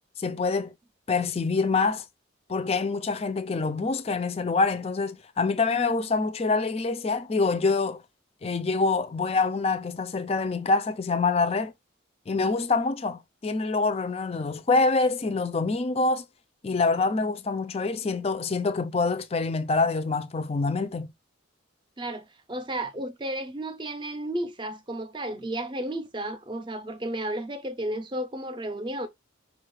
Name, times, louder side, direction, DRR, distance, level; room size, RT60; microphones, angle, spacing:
voice 1, 0.2-0.7 1.1-2.0 2.5-8.0 8.4-11.7 12.3-16.2 16.6-21.1, left 3 dB, 30° left, 0.4 m, -26 dB
voice 2, 22.0-29.1, right 1 dB, 25° right, 0.5 m, -33 dB
5.0 x 2.4 x 3.1 m
head